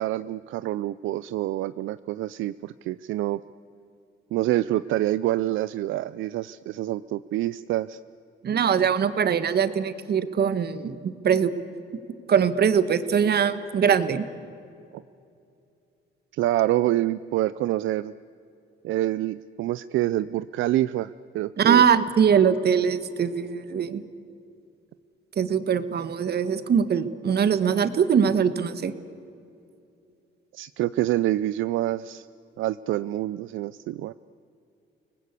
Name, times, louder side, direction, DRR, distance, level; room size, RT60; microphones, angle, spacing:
voice 1, 0.0-3.4 4.3-8.0 14.9-15.0 16.3-18.1 18.8-21.8 30.5-32.3 32.6-34.1, right 14 dB, 80° right, 15 dB, 0.5 m, -26 dB
voice 2, 8.4-11.5 12.3-14.3 21.6-24.0 25.4-28.9, right 7 dB, 55° right, 12 dB, 1.5 m, -22 dB
30.0 x 19.5 x 8.3 m, 2.6 s
cardioid pair, 90°, 20 cm